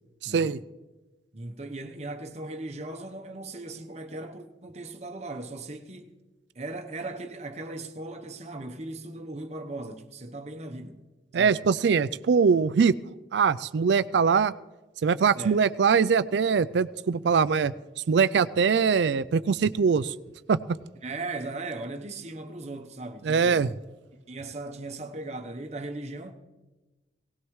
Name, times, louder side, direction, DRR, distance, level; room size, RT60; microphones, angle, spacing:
voice 1, 0.2-0.6 11.3-12.9 13.3-14.5 15.0-17.7 18.1-20.1 20.5-20.6 23.2-23.7, right 6 dB, 75° right, 0.4 m, -22 dB
voice 2, 1.3-6.1 6.5-11.0 11.4-11.6 15.3-15.6 21.0-23.7 24.3-26.3, right 2 dB, 35° right, 1.0 m, -38 dB
19.0 x 17.5 x 3.2 m
head